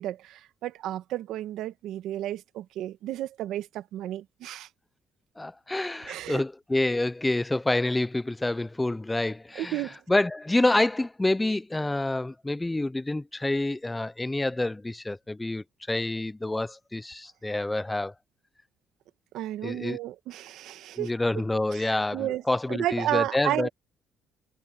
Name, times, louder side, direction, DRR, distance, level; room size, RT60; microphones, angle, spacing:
voice 1, 0.0-4.7 6.1-6.4 9.5-10.0 19.3-21.1 21.7-22.4 22.7-23.7, right 13 dB, 80° right, 1.6 m, -32 dB
voice 2, 5.4-9.8 10.1-18.1 19.6-20.0 21.0-23.7, left 2 dB, 15° left, 0.5 m, -27 dB
cardioid pair, 85°, 0 cm